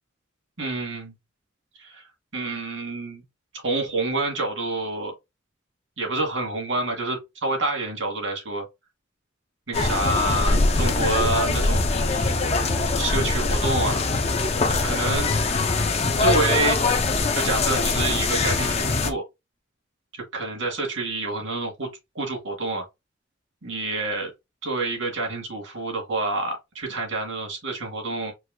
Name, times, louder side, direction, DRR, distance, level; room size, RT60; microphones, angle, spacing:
voice 1, 0.6-1.1 1.8-2.0 2.3-3.2 3.6-5.1 6.0-8.6 9.7-11.8 13.0-14.1 14.7-15.3 16.0-16.8 17.3-19.2 20.1-22.8 23.6-24.3 24.6-28.3, right 2 dB, 80° right, 2.1 m, -28 dB
sound 1, 9.7-19.1, left 3 dB, 35° left, 0.6 m, -22 dB
4.7 x 2.0 x 3.7 m
head